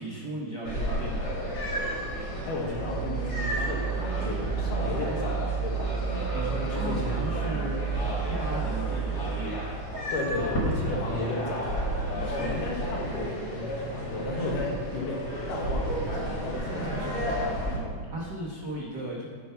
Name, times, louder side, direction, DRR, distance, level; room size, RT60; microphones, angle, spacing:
voice 1, 0.0-1.4 6.3-9.6 12.1-12.6 17.7-19.2, right 1 dB, 75° right, -4 dB, 0.9 m, -37 dB
sound 1, 0.6-17.8, equal, 35° left, 2.0 m, -32 dB
voice 2, 2.5-6.0 6.3-7.2 10.1-11.7 12.2-17.4, left 2 dB, 80° left, -2 dB, 3.0 m, -33 dB
sound 2, 2.7-9.5, right 8 dB, 55° left, 2.8 m, -32 dB
sound 3, 2.8-3.0 3.6-3.8 4.3-4.6 5.0-5.2 5.8-6.0 6.7-7.0 7.6-7.7 8.3-8.6 9.2-9.4 9.9-10.2 10.8-11.0 11.7-11.9, right 3 dB, 55° right, 1.9 m, -44 dB
9.2 x 5.8 x 5.6 m, 2.1 s
omnidirectional pair, 3.8 m